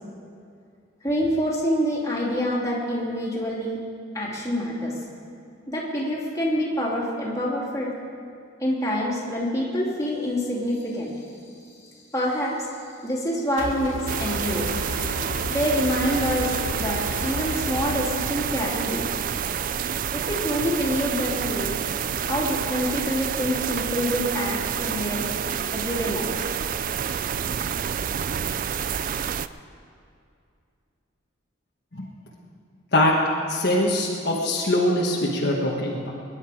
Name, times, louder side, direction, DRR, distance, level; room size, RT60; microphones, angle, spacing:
voice 1, 1.0-3.8 4.1-5.0 5.7-7.9 8.6-11.2 11.8-12.7 13.0-14.7 15.5-19.1 20.1-21.8 22.3-25.2 25.7-26.5, equal, 15° left, -5 dB, 2.7 m, -26 dB
sound 1, 13.6-18.0, left 2 dB, 70° left, 0.8 m, -33 dB
sound 2, 14.1-29.5, right 8 dB, 40° right, 0.3 m, -28 dB
voice 2, 33.5-36.1, left 1 dB, 50° left, -3 dB, 1.5 m, -22 dB
22.5 x 10.5 x 4.9 m, 2.4 s
head